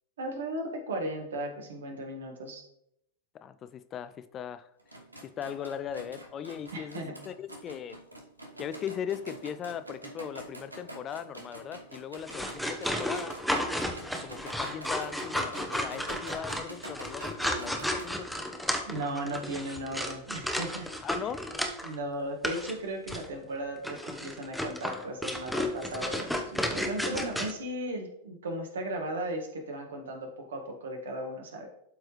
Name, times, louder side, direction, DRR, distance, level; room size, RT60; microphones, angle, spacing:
voice 1, 0.2-2.6 6.7-7.2 18.8-20.9 21.8-31.7, right 1 dB, 65° right, 2 dB, 1.6 m, -36 dB
voice 2, 3.3-4.7 5.2-8.0 8.6-13.4 14.2-18.3 21.0-21.5, left 8 dB, 30° left, 13 dB, 0.4 m, -39 dB
sound 1, 4.8-18.0, right 1 dB, 85° right, 1.0 m, -46 dB
sound 2, 12.2-22.0 22.4-22.7 23.1-23.3 23.8-27.5, equal, ahead, 0.9 m, -33 dB
12.0 x 4.6 x 3.1 m, 0.77 s
figure-of-eight pair, 90°, 0 cm